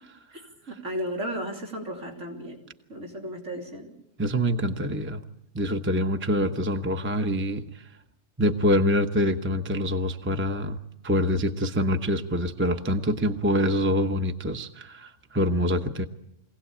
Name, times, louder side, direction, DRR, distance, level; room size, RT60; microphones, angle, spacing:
voice 1, 0.7-2.6 2.9-3.9, equal, 80° right, 0 dB, 3.6 m, -34 dB
voice 2, 4.2-5.2 5.5-7.9 8.4-10.8 11.0-16.1, equal, 10° right, 5 dB, 0.8 m, -25 dB
23.5 x 17.5 x 8.6 m, 0.85 s
omnidirectional pair, 1.3 m